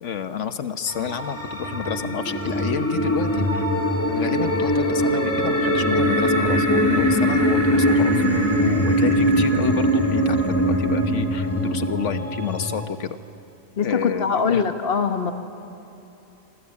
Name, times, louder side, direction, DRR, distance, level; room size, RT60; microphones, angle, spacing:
voice 1, 0.0-3.6 4.2-8.1 8.6-13.2 13.8-14.6, left 7 dB, 80° left, 10 dB, 1.4 m, -29 dB
sound 1, 0.9-12.9, equal, 10° left, 2.0 m, -21 dB
voice 2, 13.8-15.3, left 5 dB, 55° left, 7 dB, 1.6 m, -22 dB
26.5 x 24.5 x 8.5 m, 3.0 s
omnidirectional pair, 1.2 m